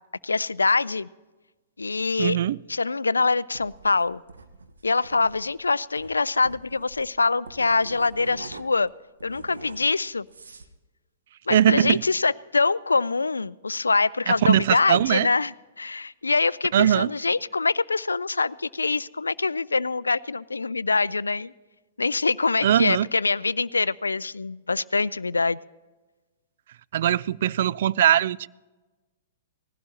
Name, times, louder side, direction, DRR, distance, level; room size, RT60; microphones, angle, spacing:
voice 1, 0.2-1.1 1.8-2.4 2.7-4.2 4.8-8.9 9.2-10.3 11.5-21.5 22.0-25.6, left 3 dB, 90° left, 21 dB, 0.3 m, -24 dB
voice 2, 2.2-2.6 11.5-12.0 14.3-15.3 16.7-17.1 22.6-23.1 26.9-28.5, right 10 dB, 60° right, 20 dB, 0.3 m, -21 dB
sound 1, 3.5-8.9 9.2-10.7, right 3 dB, 80° right, 1.0 m, -45 dB
19.5 x 15.5 x 2.8 m, 1.2 s
hypercardioid pair, 115°, 0 cm